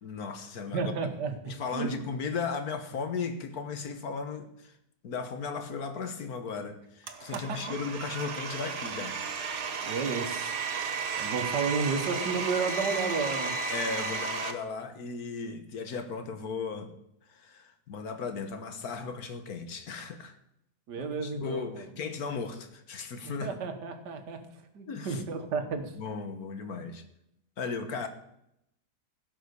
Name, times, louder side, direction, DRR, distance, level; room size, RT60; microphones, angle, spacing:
voice 1, 0.0-0.9 1.5-4.7 5.0-9.2 13.7-16.9 17.3-20.3 21.0-23.6 24.9-25.2 26.0-27.0 27.6-28.1, left 5 dB, 65° left, 8 dB, 1.6 m, -36 dB
voice 2, 0.7-1.9 7.3-7.6 9.8-10.6 11.2-13.5 20.9-21.8 23.2-25.9, right 5 dB, 85° right, 7 dB, 2.0 m, -32 dB
Domestic sounds home sounds, 7.1-14.5, right 4 dB, 50° right, 1.3 m, -33 dB
16.0 x 6.0 x 6.8 m, 0.78 s
omnidirectional pair, 1.8 m